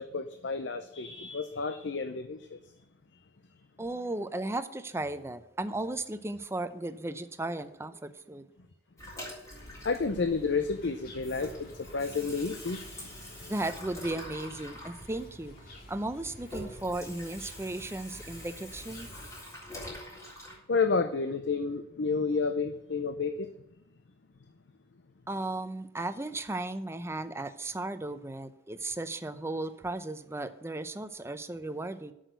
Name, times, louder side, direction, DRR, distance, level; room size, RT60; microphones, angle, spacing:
voice 1, 0.0-2.6 9.8-13.5 20.7-23.5, left 4 dB, 75° left, 0.6 m, -31 dB
voice 2, 3.8-8.5 13.5-15.5 15.9-19.1 25.3-32.1, right 2 dB, 15° right, 0.6 m, -35 dB
Water tap faucet / Sink (filling or washing), 9.0-10.8 11.1-20.6, left 1 dB, 20° left, 3.8 m, -45 dB
sound 1, 9.5-19.4, left 1 dB, 55° left, 2.0 m, -50 dB
8.0 x 6.5 x 8.0 m
head